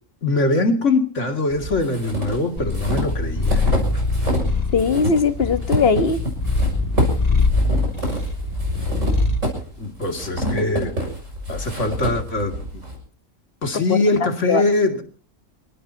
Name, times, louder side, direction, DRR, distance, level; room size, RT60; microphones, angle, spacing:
voice 1, 0.2-3.9 9.8-11.0 11.5-12.8 13.6-15.0, left 2 dB, 70° left, 6 dB, 2.8 m, -22 dB
sound 1, 1.5-4.5 4.8-12.9, equal, 75° right, 7.1 m, -27 dB
Purr, 2.6-9.5, left 2 dB, 30° left, 2.3 m, -23 dB
voice 2, 4.7-6.2 13.7-14.0 14.5-14.6, left 5 dB, 50° left, 11 dB, 1.5 m, -19 dB
27.0 x 18.5 x 2.9 m, 0.40 s
omnidirectional pair, 1.3 m